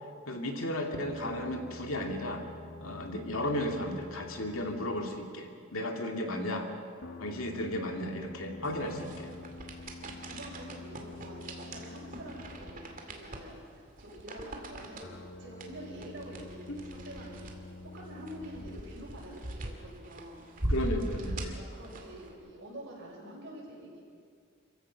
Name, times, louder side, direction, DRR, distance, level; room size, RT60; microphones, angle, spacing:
voice 1, 0.3-2.4 2.8-6.7 7.2-9.3 10.1-10.2 16.7-16.8 20.7-21.6, left 1 dB, 80° left, 2 dB, 2.4 m, -34 dB
sound 1, 1.0-5.3 7.0-13.3 15.0-18.8, left 2 dB, 55° left, 1.2 m, -48 dB
sound 2, 8.6-22.3, right 1 dB, 40° right, 2.3 m, -41 dB
voice 2, 10.0-15.1 15.4-17.6 17.9-20.4 21.5-24.0, equal, 55° right, -4 dB, 7.1 m, -47 dB
27.0 x 15.5 x 6.3 m, 2.2 s
head